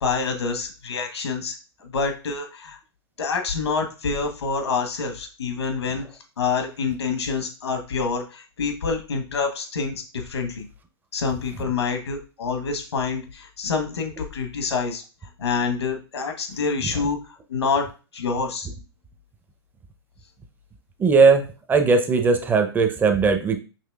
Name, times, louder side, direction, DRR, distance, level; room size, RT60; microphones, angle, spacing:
voice 1, 0.0-1.6 1.8-2.8 3.2-6.0 6.4-10.7 11.1-15.0 15.4-17.2 17.5-17.9 18.1-18.7, left 5 dB, 80° left, 5 dB, 1.1 m, -27 dB
voice 2, 21.0-23.6, right 4 dB, 15° right, 6 dB, 0.5 m, -18 dB
5.8 x 3.0 x 2.3 m, 0.33 s
hypercardioid pair, 115°, 14 cm